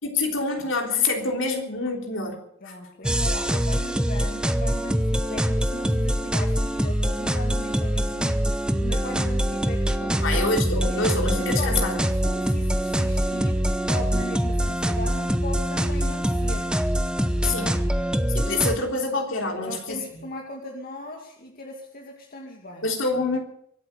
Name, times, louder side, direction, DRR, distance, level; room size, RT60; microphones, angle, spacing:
voice 1, 0.0-2.4 2.7-2.8 10.2-12.0 17.4-17.7 18.3-20.0 22.8-23.4, left 3 dB, 65° left, 2 dB, 3.5 m, -26 dB
voice 2, 2.6-10.5 10.8-11.0 11.6-13.6 13.9-16.7 17.4-17.8 19.6-22.9, left 1 dB, 45° left, 1 dB, 2.2 m, -38 dB
sound 1, 3.0-18.8, equal, 5° right, 0.8 m, -24 dB
24.0 x 8.7 x 6.7 m, 0.69 s
head